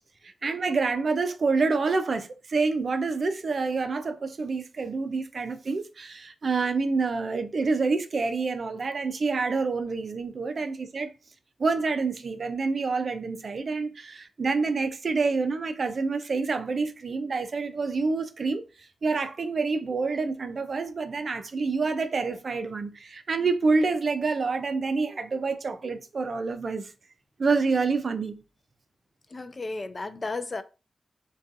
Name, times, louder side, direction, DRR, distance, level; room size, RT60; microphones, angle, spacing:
voice 1, 0.2-11.1 11.6-26.9 27.4-28.4, right 4 dB, 55° right, 0.4 m, -27 dB
voice 2, 29.3-30.6, left 3 dB, 35° left, 0.3 m, -33 dB
2.6 x 2.3 x 2.5 m
cardioid pair, 70°, 0 cm